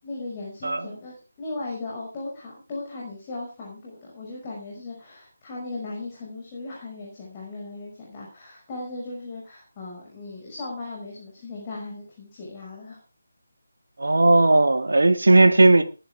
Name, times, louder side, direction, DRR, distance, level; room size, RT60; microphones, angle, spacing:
voice 1, 0.0-13.0, left 2 dB, 20° left, 6.0 m, -37 dB
voice 2, 14.0-15.8, right 2 dB, 60° right, 1.9 m, -16 dB
19.5 x 11.0 x 3.6 m
figure-of-eight pair, 155°, 0 cm